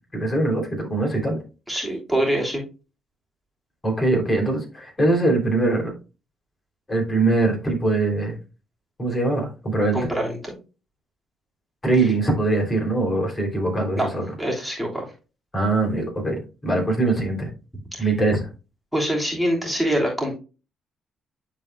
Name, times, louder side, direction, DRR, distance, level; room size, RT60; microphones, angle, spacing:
voice 1, 0.1-1.4 3.8-5.9 6.9-8.4 9.0-10.0 11.8-14.3 15.5-17.5 18.0-18.5, right 2 dB, 25° left, 0 dB, 3.3 m, -22 dB
voice 2, 1.7-2.6 9.9-10.5 14.0-14.1 14.4-15.1 17.9-18.1 18.9-20.3, right 1 dB, 5° right, -2 dB, 3.2 m, -24 dB
11.5 x 4.3 x 2.3 m, 0.32 s
supercardioid pair, 70°, 0 cm